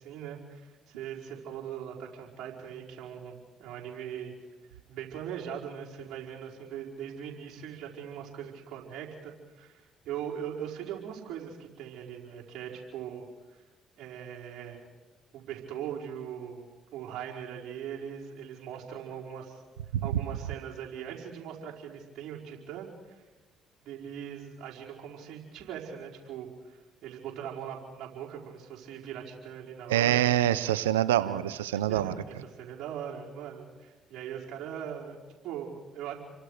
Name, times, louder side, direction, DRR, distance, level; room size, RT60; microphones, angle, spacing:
voice 1, 0.0-4.3 4.9-13.6 14.0-14.9 15.3-19.6 20.0-23.2 23.8-30.4 31.2-31.4 31.9-36.1, right 8 dB, 65° right, -3 dB, 5.1 m, -40 dB
voice 2, 29.9-32.1, right 12 dB, 90° right, 16 dB, 0.6 m, -25 dB
29.0 x 24.5 x 5.1 m, 1.2 s
hypercardioid pair, 50°, 0 cm